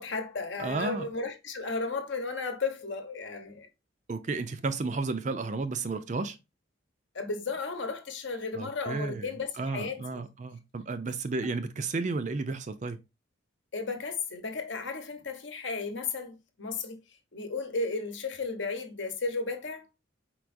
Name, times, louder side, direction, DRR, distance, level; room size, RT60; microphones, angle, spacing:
voice 1, 0.0-3.7 7.1-10.2 13.7-17.0 17.3-19.9, left 4 dB, 65° left, 0.9 m, -34 dB
voice 2, 0.6-1.1 4.1-6.4 8.5-9.3 9.6-13.0, right 3 dB, 35° right, 0.4 m, -32 dB
4.6 x 4.2 x 2.5 m
head